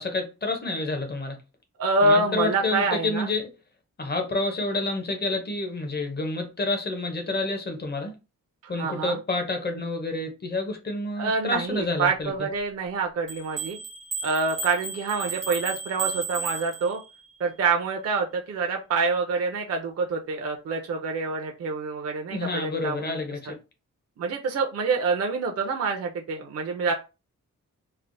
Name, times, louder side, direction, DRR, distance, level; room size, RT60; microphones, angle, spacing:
voice 1, 0.0-1.4 2.0-3.5 4.0-8.1 8.7-12.5 22.3-23.5, left 2 dB, 30° left, 0.6 m, -29 dB
voice 2, 1.8-3.3 8.6-9.2 11.2-13.8 14.2-17.0 17.4-23.1 24.2-26.9, right 4 dB, 50° right, 0.4 m, -26 dB
sound 1, 13.3-17.3, right 4 dB, 85° right, 0.9 m, -34 dB
3.2 x 2.0 x 2.5 m
wide cardioid pair, 165°, 32 cm